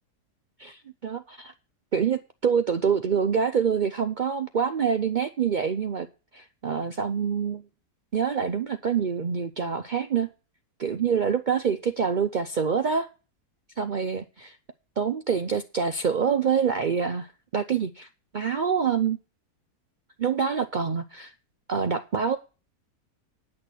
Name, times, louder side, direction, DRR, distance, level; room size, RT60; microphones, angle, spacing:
voice 1, 0.6-1.5 1.9-6.1 6.3-7.7 8.1-10.3 10.8-13.1 13.8-14.5 15.0-18.1 18.3-19.2 20.2-21.3 21.7-22.4, right 6 dB, 80° right, 7 dB, 0.4 m, -26 dB
9.7 x 6.5 x 8.3 m, 0.33 s
omnidirectional pair, 1.7 m